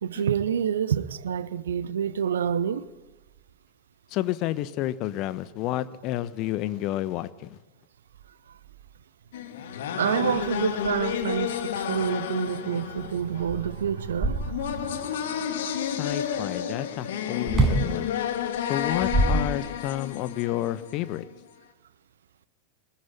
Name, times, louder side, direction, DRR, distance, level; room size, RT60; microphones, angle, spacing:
voice 1, 0.0-2.9 9.9-15.7, right 8 dB, 65° right, 1.1 m, -28 dB
voice 2, 4.1-7.6 15.8-18.1 18.7-21.2, left 14 dB, 40° left, 1.2 m, -30 dB
sound 1, 9.3-21.2, left 9 dB, 60° left, 2.2 m, -31 dB
sound 2, 13.0-13.1 13.4-14.9 17.5-17.9 18.8-20.0, right 2 dB, 20° right, 5.9 m, -25 dB
25.0 x 21.0 x 8.7 m
figure-of-eight pair, 90°, 0 cm